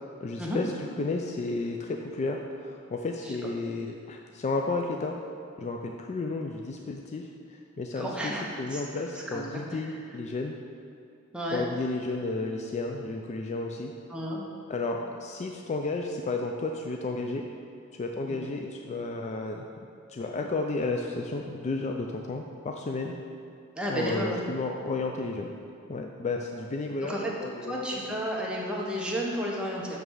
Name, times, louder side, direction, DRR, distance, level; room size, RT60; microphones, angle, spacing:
voice 1, 0.2-5.2 5.6-10.6 11.5-13.9 14.7-17.5 18.0-23.1 23.9-25.5 25.9-27.9, left 3 dB, 35° left, 2 dB, 0.3 m, -32 dB
voice 2, 7.9-10.0 11.3-11.7 14.1-14.5 18.3-18.4 23.8-24.4 27.0-27.3 27.6-30.0, equal, 5° right, -3 dB, 0.9 m, -32 dB
7.0 x 3.3 x 6.2 m, 2.5 s
head